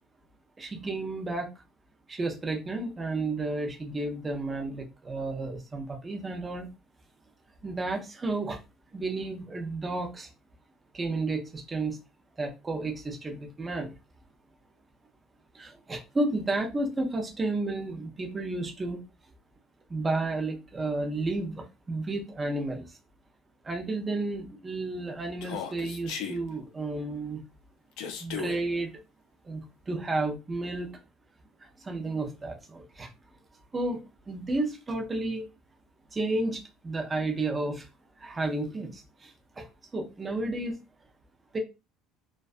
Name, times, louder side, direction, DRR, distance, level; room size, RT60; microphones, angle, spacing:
voice 1, 0.6-1.5 2.1-6.7 7.6-8.6 8.9-10.3 10.9-12.0 12.4-13.9 15.5-19.0 19.9-22.9 23.6-27.4 28.2-28.9 29.4-31.0 31.8-33.1 33.7-35.5 36.1-37.9 38.2-40.8 41.5-41.6, right 2 dB, 15° right, 3 dB, 0.5 m, -32 dB
Human voice, 25.4-26.4 28.0-28.6, left 7 dB, 70° left, 0.5 m, -36 dB
2.5 x 2.2 x 2.4 m, 0.26 s
cardioid pair, 155°, 0 cm